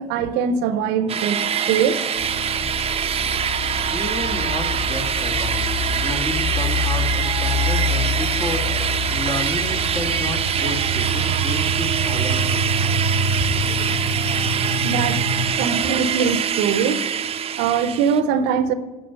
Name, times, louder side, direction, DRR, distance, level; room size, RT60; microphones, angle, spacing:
voice 1, 0.0-2.0 14.8-15.2 15.6-17.0 17.6-18.7, right 7 dB, 70° right, 0.8 m, -22 dB
sound 1, 1.1-18.2, right 8 dB, 35° right, 0.7 m, -24 dB
sound 2, 2.1-15.5, left 1 dB, 85° left, 4.0 m, -26 dB
voice 2, 3.9-12.7, left 2 dB, 30° left, 2.0 m, -31 dB
11.0 x 6.1 x 6.8 m
hypercardioid pair, 75°, 18 cm